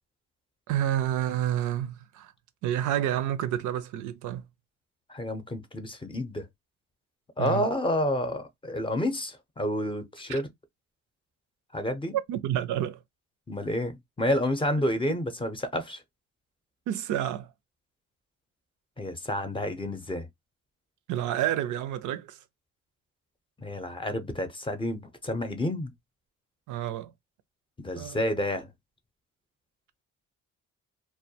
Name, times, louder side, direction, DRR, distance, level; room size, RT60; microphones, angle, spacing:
voice 1, 0.7-2.3 2.6-4.4 7.4-7.7 10.3-10.4 12.1-13.0 16.9-17.5 21.1-22.4 26.7-27.1 28.0-28.2, right 11 dB, 80° right, 0.4 m, -29 dB
voice 2, 5.1-6.5 7.4-10.5 11.7-12.2 13.5-16.0 19.0-20.3 23.6-25.9 27.8-28.7, left 1 dB, 15° left, 0.5 m, -29 dB
2.2 x 2.1 x 2.6 m
cardioid pair, 90°, 30 cm